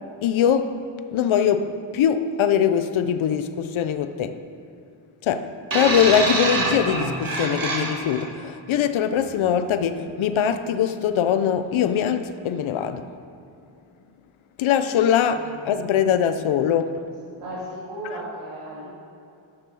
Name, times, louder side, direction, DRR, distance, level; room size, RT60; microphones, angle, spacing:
voice 1, 0.2-0.8 1.1-4.4 5.2-13.0 14.6-17.0, left 8 dB, 70° left, 0.7 m, -22 dB
sound 1, 5.7-8.3 9.2-9.3, right 2 dB, 40° right, 1.8 m, -25 dB
voice 2, 15.3-15.8 17.4-18.9, right 1 dB, 75° right, 2.7 m, -36 dB
11.5 x 6.8 x 6.4 m
cardioid pair, 115°, 50 cm